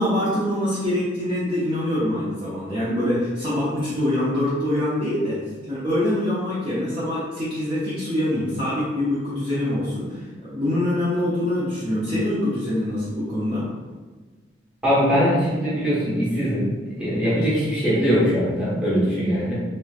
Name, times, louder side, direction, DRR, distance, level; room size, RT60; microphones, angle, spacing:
voice 1, 0.0-5.4 5.7-13.7, left 1 dB, 30° right, -11 dB, 0.7 m, -24 dB
voice 2, 14.8-16.7 17.0-19.5, equal, 5° right, -10 dB, 1.2 m, -21 dB
3.1 x 3.0 x 2.4 m, 1.4 s
head